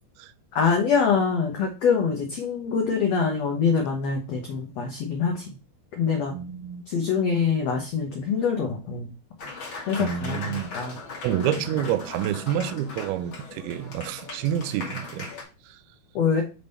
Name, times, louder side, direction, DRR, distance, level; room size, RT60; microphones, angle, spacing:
voice 1, 0.5-5.5 5.9-6.4 6.9-9.1 9.9-11.0 16.1-16.4, left 6 dB, 85° left, 1.4 m, -24 dB
voice 2, 6.3-6.8 10.0-10.7 11.2-15.3 15.7-15.8, right 10 dB, 85° right, 2.5 m, -28 dB
Applause, 9.4-15.4, left 4 dB, 45° left, 1.7 m, -39 dB
5.8 x 3.5 x 5.3 m
omnidirectional pair, 4.4 m